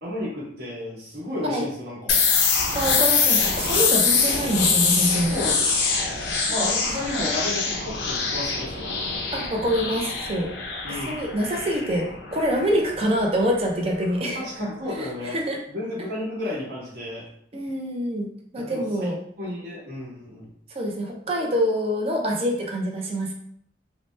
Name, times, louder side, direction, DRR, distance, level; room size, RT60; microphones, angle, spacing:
voice 1, 0.0-2.2 2.8-3.1 5.3-5.8 6.5-9.2 10.8-11.1 14.3-15.4 15.7-17.2 18.6-19.1 19.4-20.5, left 1 dB, 60° right, -6 dB, 1.2 m, -32 dB
sound 1, 2.1-13.7, left 5 dB, 75° left, 0.5 m, -24 dB
voice 2, 2.7-5.4 6.6-6.7 9.3-10.5 11.1-14.4 15.0-15.6 17.5-18.3 18.5-19.1 20.7-23.3, equal, 35° right, 1 dB, 0.5 m, -25 dB
2.8 x 2.1 x 3.1 m, 0.66 s
head